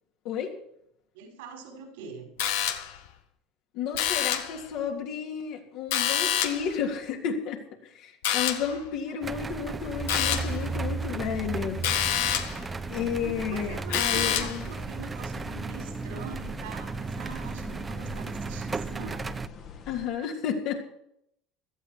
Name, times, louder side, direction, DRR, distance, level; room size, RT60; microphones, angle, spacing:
voice 1, 0.2-0.5 3.7-7.6 7.9-11.8 12.9-14.6 19.9-20.9, left 7 dB, 65° left, 1 dB, 3.4 m, -32 dB
voice 2, 1.1-2.3 8.7-9.2 13.2-19.4, right 5 dB, 90° right, 1 dB, 5.6 m, -43 dB
sound 1, 2.4-3.1 3.9-4.6 5.9-6.7 8.2-8.8 10.1-10.6 11.8-12.6 13.9-14.7, left 10 dB, 85° left, 1.6 m, -27 dB
sound 2, 9.2-19.5, right 4 dB, 20° right, 0.6 m, -35 dB
sound 3, 9.8-20.1, left 5 dB, 50° left, 2.2 m, -45 dB
17.0 x 13.0 x 4.8 m, 0.74 s
supercardioid pair, 110°, 0 cm